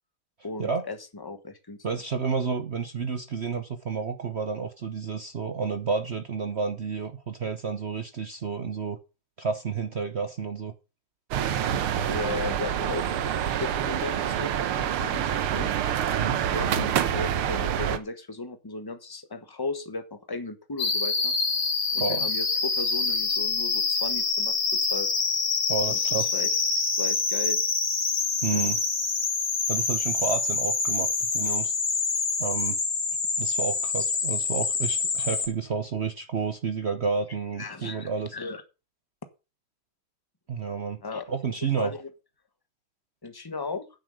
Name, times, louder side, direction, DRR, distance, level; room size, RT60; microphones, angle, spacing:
voice 1, 0.4-1.8 12.1-15.7 16.5-21.3 21.9-24.5 24.9-25.1 25.9-26.5 27.0-27.6 28.5-28.7 35.2-35.3 37.6-38.6 41.0-41.3 41.8-42.1 43.2-43.9, left 3 dB, 15° left, 9 dB, 0.9 m, -36 dB
voice 2, 1.8-9.0 9.4-10.7 16.1-16.4 22.0-22.3 25.7-26.3 28.4-28.8 29.7-31.7 32.4-32.8 33.4-38.3 40.5-41.0 41.3-41.9, right 5 dB, 60° right, 9 dB, 0.6 m, -30 dB
sound 1, 11.3-18.0, right 9 dB, 90° right, 1.9 m, -27 dB
sound 2, 20.8-35.5, left 4 dB, 55° left, 2.8 m, -26 dB
9.5 x 7.6 x 6.4 m, 0.30 s
omnidirectional pair, 2.3 m